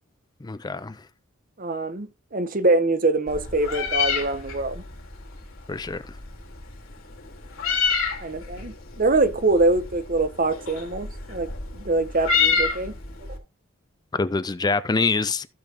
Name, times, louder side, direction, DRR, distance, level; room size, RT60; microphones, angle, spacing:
voice 1, 0.4-1.0 5.7-6.0 14.1-15.5, left 4 dB, 20° left, 0.4 m, -25 dB
voice 2, 1.6-4.8 8.2-12.9, right 2 dB, 45° right, 1.1 m, -24 dB
Meow, 3.3-13.4, left 6 dB, 90° left, 3.0 m, -29 dB
15.5 x 6.2 x 3.0 m
head